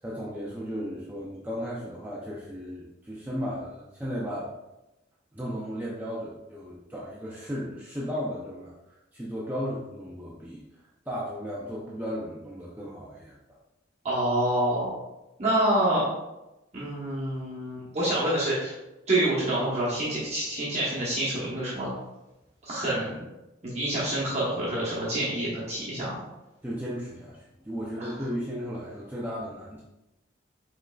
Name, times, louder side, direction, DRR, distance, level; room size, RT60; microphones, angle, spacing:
voice 1, 0.0-4.5 5.3-8.7 9.1-10.6 11.1-13.6 26.6-29.8, equal, 10° right, -6 dB, 0.5 m, -35 dB
voice 2, 14.0-14.9 15.4-16.1 16.7-18.7 19.1-21.9 22.6-23.2 23.6-26.2 28.0-28.1, right 1 dB, 35° right, -8 dB, 1.1 m, -27 dB
5.2 x 3.7 x 2.3 m, 0.98 s
head